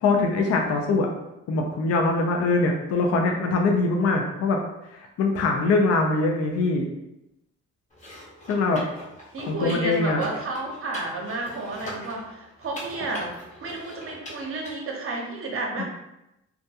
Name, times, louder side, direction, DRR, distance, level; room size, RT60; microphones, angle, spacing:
voice 1, 0.0-1.1 1.5-4.6 4.9-6.9 8.5-8.8 9.4-10.2 15.8-15.9, left 3 dB, 55° left, 2 dB, 0.4 m, -23 dB
sound 1, 7.9-14.7, left 1 dB, 25° left, 0.8 m, -42 dB
voice 2, 9.3-15.8, right 2 dB, 45° right, 0 dB, 0.7 m, -32 dB
2.3 x 2.2 x 2.7 m, 0.90 s
cardioid pair, 90°, 30 cm